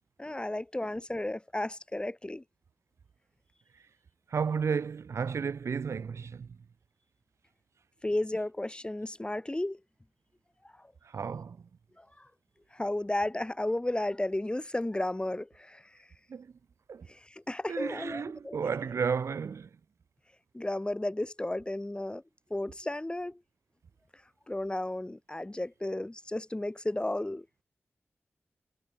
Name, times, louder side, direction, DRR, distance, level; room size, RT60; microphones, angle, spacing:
voice 1, 0.2-2.4 8.0-9.8 12.0-12.3 12.7-15.8 17.1-18.6 20.5-22.2 22.5-23.4 24.5-27.5, left 1 dB, 20° left, 5.5 m, -33 dB
voice 2, 4.3-6.6 11.0-11.6 16.3-16.5 16.9-17.1 17.7-19.7, right 6 dB, 80° right, 2.3 m, -32 dB
cardioid pair, 55°, 5 cm